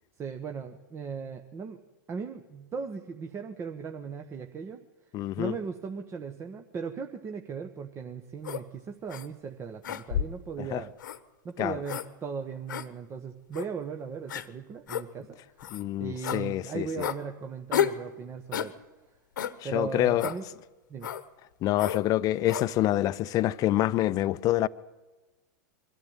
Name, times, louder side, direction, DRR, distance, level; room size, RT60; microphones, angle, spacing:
voice 1, 0.2-1.8 2.1-4.8 5.4-10.9 11.4-15.4 16.0-18.7 19.6-20.4 20.9-21.1, right 6 dB, 25° right, 1.2 m, -37 dB
voice 2, 5.1-5.5 10.6-10.8 11.6-11.8 15.7-17.1 19.6-20.3 21.6-24.7, left 14 dB, 35° left, 0.7 m, -27 dB
sound 1, 8.4-8.6 9.1-9.3 9.8-10.4 11.0-11.2 11.8-12.1 12.7-12.9 13.5-13.7 14.3-14.5 14.9-15.0 15.6-15.8 16.2-16.4 17.0-17.2 17.7-18.0 18.5-18.7 19.4-19.6 20.2-20.4 21.0-21.2 21.8-22.0 22.5-22.7, left 9 dB, 80° left, 1.2 m, -31 dB
23.0 x 13.0 x 9.0 m
hypercardioid pair, 115°, 10 cm